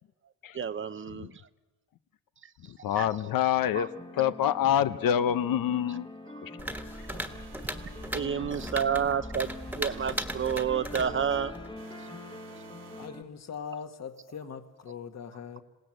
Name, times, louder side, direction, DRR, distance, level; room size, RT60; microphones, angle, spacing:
voice 1, 0.5-1.4 2.4-2.5 3.0-3.1 3.7-3.9 6.3-6.5 7.1-7.2 8.1-9.5 9.8-11.5, right 7 dB, 35° right, 12 dB, 0.7 m, -30 dB
voice 2, 2.7-3.9 4.2-6.1 6.4-6.5, left 10 dB, 80° left, 12 dB, 0.8 m, -26 dB
sound 1, 3.7-13.2, left 2 dB, 15° left, 1.1 m, -44 dB
sound 2, 6.6-11.8, equal, 5° right, 1.5 m, -38 dB
sound 3, 6.9-8.2 9.3-10.7 11.8-13.2, right 8 dB, 70° right, 1.7 m, -53 dB
voice 3, 13.0-15.6, left 7 dB, 50° left, 7 dB, 1.7 m, -41 dB
27.0 x 18.0 x 7.8 m, 1.2 s
wide cardioid pair, 155°, 34 cm